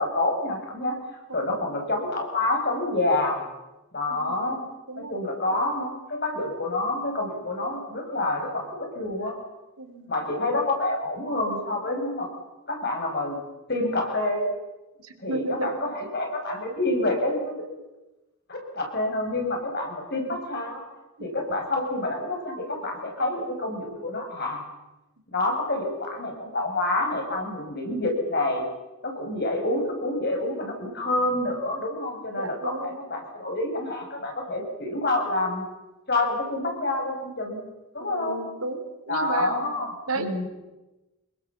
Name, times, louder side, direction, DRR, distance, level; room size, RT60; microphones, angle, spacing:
voice 1, 0.0-3.5 3.9-4.7 5.0-9.3 10.1-12.3 12.7-13.4 13.7-14.5 15.2-17.6 18.5-20.8 21.2-24.6 25.3-28.6 29.0-35.6 36.1-37.6 37.9-38.4 39.1-40.4, left 2 dB, 50° left, 2 dB, 6.3 m, -28 dB
voice 2, 4.1-4.5 4.9-5.2 9.8-10.1 15.0-15.7 21.2-21.3 32.4-33.0 38.0-39.7 40.1-40.3, right 3 dB, 90° right, 6 dB, 3.6 m, -33 dB
26.0 x 22.0 x 7.4 m, 1.0 s
head